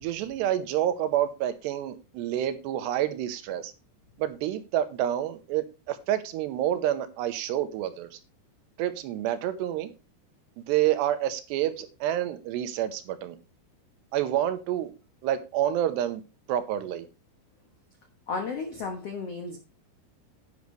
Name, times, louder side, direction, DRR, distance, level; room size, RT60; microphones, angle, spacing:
voice 1, 0.0-3.7 4.2-8.2 8.8-9.9 10.7-13.4 14.1-14.9 15.2-16.2 16.5-17.1, right 11 dB, 85° right, 3.0 m, -28 dB
voice 2, 18.3-19.6, left 4 dB, 75° left, 1.4 m, -33 dB
10.5 x 9.4 x 3.3 m
omnidirectional pair, 4.9 m